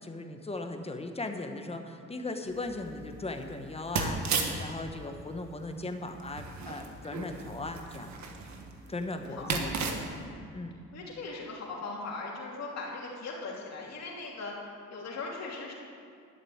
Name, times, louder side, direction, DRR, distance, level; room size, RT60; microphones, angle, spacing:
voice 1, 0.0-8.1 8.9-9.7 10.5-10.7, left 2 dB, 20° left, 5 dB, 1.1 m, -38 dB
sound 1, 2.5-10.3, right 4 dB, 65° right, 1.5 m, -36 dB
voice 2, 9.4-10.4 10.9-15.7, left 3 dB, 60° left, -2 dB, 2.8 m, -40 dB
11.5 x 6.6 x 8.7 m, 2.3 s
cardioid pair, 90°, 30 cm